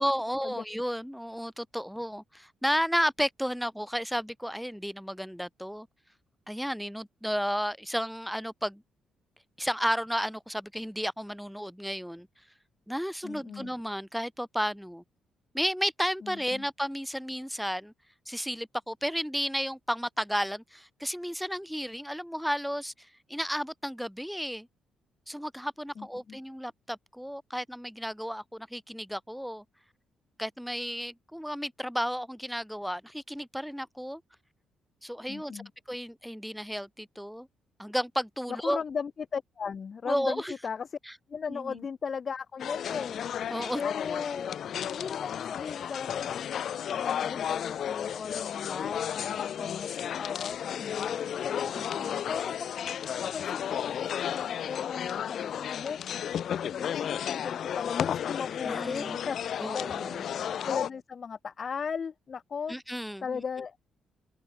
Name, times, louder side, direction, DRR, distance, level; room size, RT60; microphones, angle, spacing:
voice 1, 0.0-5.9 6.5-8.8 9.6-12.3 12.9-15.0 15.5-17.9 18.3-22.9 23.3-24.7 25.3-29.6 30.4-34.2 35.0-35.6 35.9-37.5 37.8-38.8 40.1-40.5 41.1-41.2 41.5-41.8 43.5-43.8 49.6-49.7 51.7-52.2 58.6-59.2 59.6-60.2 62.7-63.4, equal, ahead, 1.4 m, -33 dB
voice 2, 13.2-13.7 16.2-16.7 26.0-26.4 35.3-35.7 38.5-41.0 41.3-43.2 43.8-44.5 44.9-46.5 46.9-51.7 52.3-56.0 56.5-60.1 60.6-62.8 63.2-63.8, left 6 dB, 45° left, 1.7 m, -37 dB
sound 1, 42.6-60.9, left 9 dB, 65° left, 1.2 m, -33 dB
cardioid pair, 90°, 0 cm